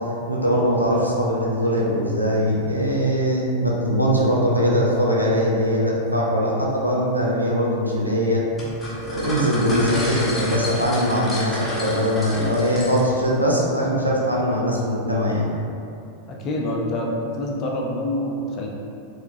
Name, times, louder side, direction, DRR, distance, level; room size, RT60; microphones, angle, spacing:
voice 1, 0.3-8.4 9.0-15.5, equal, 85° right, -4 dB, 0.4 m, -21 dB
sound 1, 8.6-13.3, left 1 dB, 5° left, 0.9 m, -30 dB
voice 2, 16.3-18.7, left 1 dB, 35° left, -2 dB, 0.5 m, -26 dB
4.4 x 2.0 x 2.6 m, 2.6 s
figure-of-eight pair, 90°, 0 cm